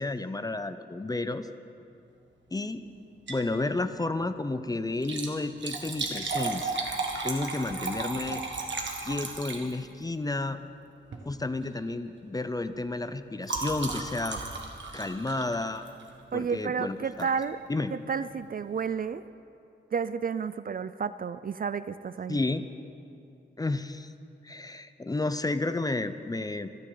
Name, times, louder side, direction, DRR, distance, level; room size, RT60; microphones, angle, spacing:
voice 1, 0.0-1.5 2.5-2.9 3.3-6.9 7.2-8.4 9.0-10.6 11.3-14.4 14.9-15.9 16.3-17.3 17.7-17.9 22.3-22.6 23.6-24.1 24.4-26.7, left 2 dB, 20° left, 11 dB, 0.5 m, -31 dB
Liquid, 3.1-3.5 3.9-4.0 4.9-10.0 11.0-11.3 11.6-11.9 12.2-16.2 17.2-17.4 18.0-18.1 18.3-18.4, right 3 dB, 65° right, 1.6 m, -35 dB
voice 2, 16.3-17.6 17.9-19.2 19.9-22.4, right 6 dB, 45° right, 14 dB, 0.4 m, -31 dB
26.0 x 9.8 x 3.9 m, 2.6 s
wide cardioid pair, 120°, 20 cm